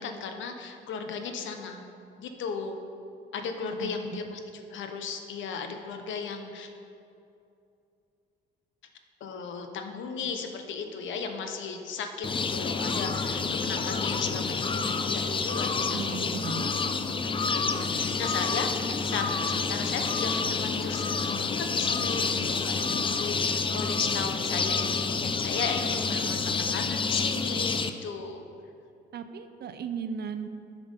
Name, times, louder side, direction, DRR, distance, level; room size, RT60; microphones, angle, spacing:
voice 1, 0.0-1.9 2.2-2.8 3.3-6.7 9.2-16.4 17.2-26.4 26.7-28.4, left 5 dB, 75° left, 5 dB, 1.0 m, -36 dB
voice 2, 3.6-4.2 15.9-16.7 26.2-26.6 29.1-30.5, right 6 dB, 55° right, 9 dB, 0.6 m, -37 dB
sound 1, 12.2-27.9, left 4 dB, 25° left, 0.5 m, -28 dB
9.2 x 5.9 x 5.3 m, 2.5 s
cardioid pair, 90°, 20 cm